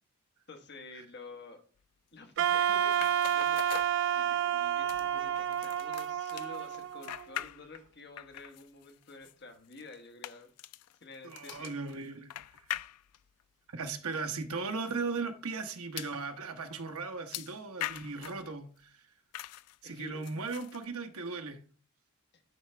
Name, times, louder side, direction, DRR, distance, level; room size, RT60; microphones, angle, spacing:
voice 1, 0.5-1.6 2.1-3.6 4.1-10.5 11.0-11.7 19.8-20.2 22.3-22.4, left 3 dB, 50° left, 1.2 m, -50 dB
Wind instrument woodwind instrument, 2.4-7.4, right 9 dB, 55° right, 0.3 m, -30 dB
sound 1, 2.9-4.5 4.9-7.9 8.2-13.4 14.1-14.2 14.6-14.7 16.0-16.2 17.3-18.5 19.3-19.8 20.2-20.9, left 13 dB, 85° left, 0.3 m, -43 dB
voice 2, 11.2-12.6 13.7-19.0 19.8-21.6, right 4 dB, 75° right, 1.0 m, -37 dB
10.5 x 4.9 x 3.3 m
head